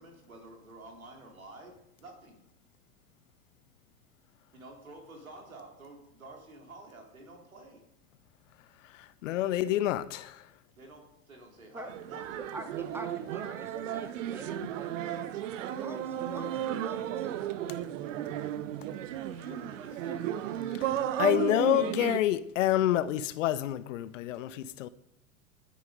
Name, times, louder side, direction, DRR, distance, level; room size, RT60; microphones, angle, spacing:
voice 1, 0.0-2.4 4.5-7.8 10.7-12.5 12.8-13.1 19.3-20.5, right 2 dB, 85° right, 3.9 m, -50 dB
voice 2, 8.9-10.4 21.2-24.9, left 13 dB, 65° left, 0.9 m, -28 dB
sound 1, 11.9-22.2, right 11 dB, 65° right, 1.2 m, -34 dB
voice 3, 12.5-17.3, right 1 dB, 5° right, 2.4 m, -46 dB
19.5 x 9.5 x 5.3 m
hypercardioid pair, 85°, 40 cm